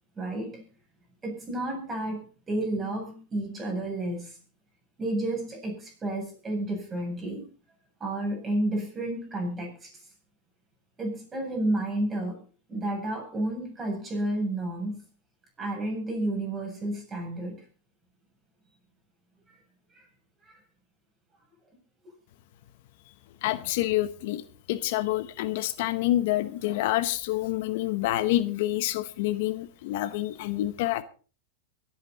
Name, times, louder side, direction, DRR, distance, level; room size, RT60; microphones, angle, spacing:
voice 1, 0.2-0.6 1.2-4.4 5.0-7.5 8.0-10.0 11.0-12.4 12.7-15.0 15.6-17.6 19.5-19.6 19.9-20.1 20.4-20.6, right 1 dB, 20° right, 1 dB, 7.5 m, -31 dB
voice 2, 23.4-31.0, left 15 dB, 65° left, 14 dB, 1.0 m, -27 dB
23.5 x 8.9 x 4.1 m, 0.36 s
hypercardioid pair, 125°, 0 cm